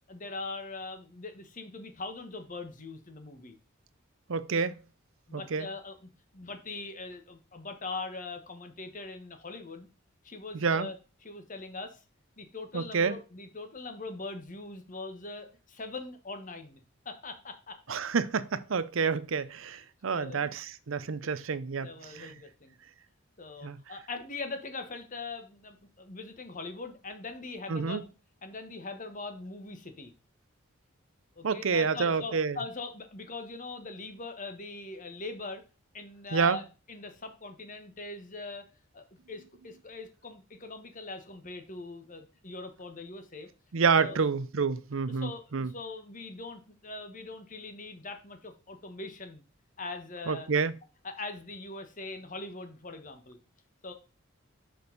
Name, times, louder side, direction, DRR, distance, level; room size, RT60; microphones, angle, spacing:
voice 1, 0.1-3.6 5.3-9.9 10.2-10.9 11.2-12.0 12.4-17.9 20.1-20.6 21.2-21.3 21.8-22.8 23.4-28.1 28.4-30.1 31.3-35.6 35.9-38.7 38.9-43.5 43.9-44.2 45.2-49.4 49.8-50.5 51.0-53.4 53.8-53.9, left 3 dB, 40° left, 1.3 m, -41 dB
voice 2, 4.3-4.7 5.3-5.7 10.5-10.9 12.7-13.2 17.9-22.3 23.6-23.8 27.7-28.0 31.4-32.6 36.3-36.6 43.7-45.7 50.3-50.7, right 5 dB, 70° right, 0.6 m, -28 dB
6.3 x 5.3 x 4.0 m
head